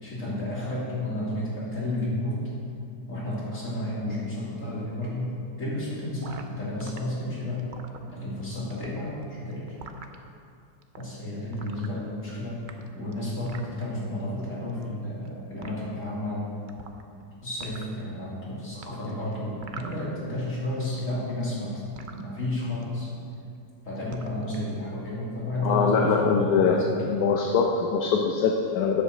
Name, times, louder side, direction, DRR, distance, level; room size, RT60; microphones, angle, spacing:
voice 1, 0.0-2.4 3.1-5.3 5.6-7.6 8.1-9.7 11.0-12.6 12.9-16.5 17.4-21.8 22.1-23.1 23.8-27.1, left 1 dB, 50° left, -7 dB, 3.3 m, -32 dB
sound 1, 6.2-7.0 7.5-8.4 8.7-10.2 10.8-11.0 11.5-12.3 12.6-13.8 14.7-15.3 15.6-15.7 16.7-17.2 17.5-18.0 18.8-20.4 20.7-22.2 22.8-23.1 23.3-23.7 24.0-24.6, right 5 dB, 60° right, 0.5 m, -44 dB
voice 2, 25.6-29.0, left 5 dB, 70° left, 2 dB, 1.2 m, -23 dB
8.7 x 7.8 x 6.6 m, 2.5 s
omnidirectional pair, 1.8 m